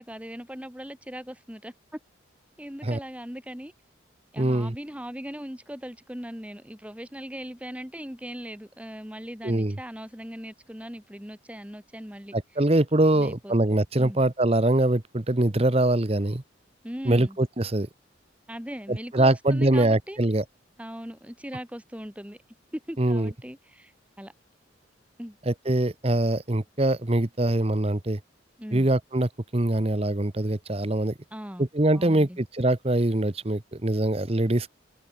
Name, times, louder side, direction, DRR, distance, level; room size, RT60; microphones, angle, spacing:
voice 1, 0.0-2.0 2.6-3.7 4.3-12.4 13.1-13.5 13.9-14.2 16.8-17.4 18.5-20.2 20.8-22.4 22.7-23.9 24.2-24.3 25.2-25.4 28.6-28.9 31.3-31.7 32.0-32.4, equal, 5° right, 3.5 m, -39 dB
voice 2, 4.4-4.8 9.4-9.8 12.3-16.4 17.0-17.9 18.9-20.4 23.0-23.3 25.5-28.2 28.7-31.1 31.6-34.7, right 1 dB, 30° right, 1.0 m, -23 dB
head